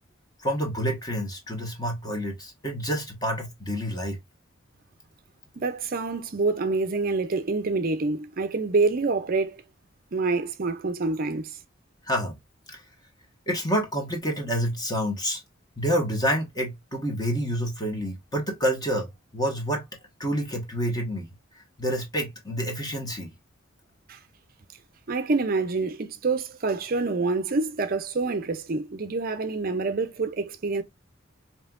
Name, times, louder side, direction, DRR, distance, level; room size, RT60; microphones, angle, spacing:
voice 1, 0.4-4.2 12.0-12.4 12.7-12.8 13.5-15.4 15.8-19.1 19.3-19.8 20.2-21.3 21.5-23.3, equal, 20° left, 1.3 m, -28 dB
voice 2, 5.6-9.6 10.1-11.6 24.1-24.2 25.1-30.8, right 3 dB, 45° right, 0.5 m, -27 dB
5.4 x 2.8 x 2.4 m
head